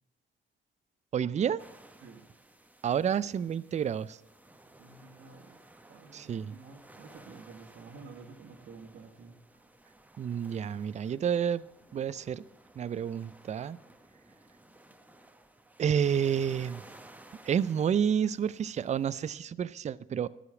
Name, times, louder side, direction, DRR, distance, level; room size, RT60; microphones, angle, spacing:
voice 1, 1.1-1.6 2.8-4.2 6.1-6.6 10.2-11.7 11.9-12.4 12.8-13.8 15.8-16.8 17.4-20.3, right 8 dB, 35° right, 17 dB, 0.4 m, -29 dB
sound 1, 1.6-19.3, right 1 dB, 10° right, 0.8 m, -56 dB
voice 2, 4.7-5.6 5.9-9.4, right 4 dB, 70° right, 0 dB, 1.3 m, -50 dB
12.5 x 5.1 x 8.4 m, 0.99 s
cardioid pair, 90°, 20 cm